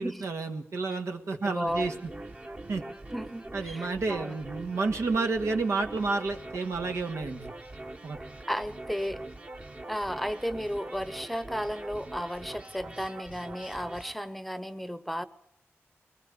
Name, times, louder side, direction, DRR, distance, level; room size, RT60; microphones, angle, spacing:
voice 1, 0.0-2.1 2.7-2.8 3.5-7.5 8.0-8.2, right 3 dB, 85° right, 1.8 m, -30 dB
voice 2, 1.4-1.9 3.1-4.4 8.5-9.3 9.9-15.2, equal, ahead, 0.9 m, -34 dB
sound 1, 1.7-14.1, right 2 dB, 25° right, 1.1 m, -43 dB
22.0 x 20.0 x 8.5 m
wide cardioid pair, 90°, 5 cm